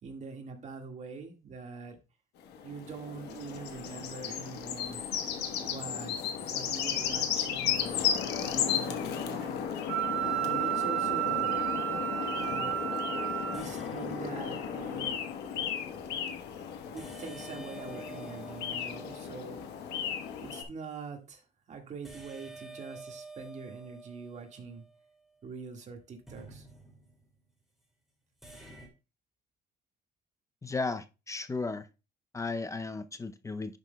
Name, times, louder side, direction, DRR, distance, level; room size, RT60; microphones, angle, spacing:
voice 1, 0.0-2.0 2.6-5.0 5.6-9.6 10.2-11.5 12.3-12.8 13.5-15.2 16.9-19.9 20.4-24.8 25.4-26.7, right 4 dB, 45° right, 1.8 m, -44 dB
sound 1, 2.4-20.6, left 8 dB, 80° left, 1.2 m, -34 dB
Wind instrument woodwind instrument, 9.9-13.6, right 13 dB, 75° right, 2.6 m, -31 dB
sound 2, 13.5-15.1 17.0-20.0 22.0-25.4 26.3-27.3 28.4-28.9, right 3 dB, ahead, 2.3 m, -50 dB
voice 2, 30.6-31.8 32.3-33.8, left 3 dB, 20° left, 0.5 m, -35 dB
11.0 x 6.0 x 2.2 m
cardioid pair, 110°, 17 cm